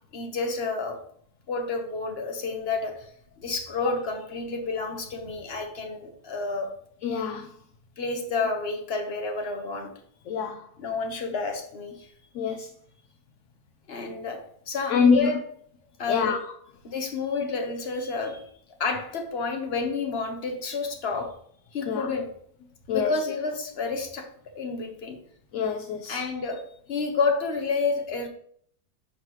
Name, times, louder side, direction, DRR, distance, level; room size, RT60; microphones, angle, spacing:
voice 1, 0.1-1.0 1.5-3.1 3.4-6.7 8.0-9.9 10.8-12.1 13.9-15.4 16.0-16.3 16.8-18.4 18.8-21.4 21.7-22.4 22.9-24.3 24.5-25.2 26.1-26.6 26.9-28.3, left 4 dB, 45° left, 4 dB, 1.3 m, -30 dB
voice 2, 7.0-7.5 10.3-10.6 12.3-12.7 14.9-15.3 16.1-16.4 21.9-22.1 22.9-23.1 25.5-26.2, left 6 dB, 65° left, 5 dB, 0.9 m, -24 dB
11.0 x 4.7 x 3.1 m, 0.63 s
omnidirectional pair, 1.6 m